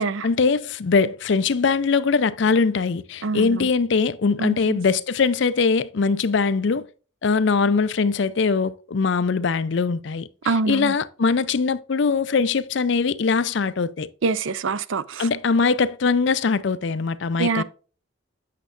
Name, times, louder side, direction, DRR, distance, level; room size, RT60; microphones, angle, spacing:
voice 1, 0.2-6.8 7.2-14.1 15.2-17.6, left 4 dB, 60° left, 0.5 m, -22 dB
voice 2, 3.2-3.7 4.4-4.8 10.4-10.9 14.2-15.3 17.4-17.6, right 4 dB, 70° right, 0.5 m, -25 dB
8.3 x 6.7 x 2.5 m
head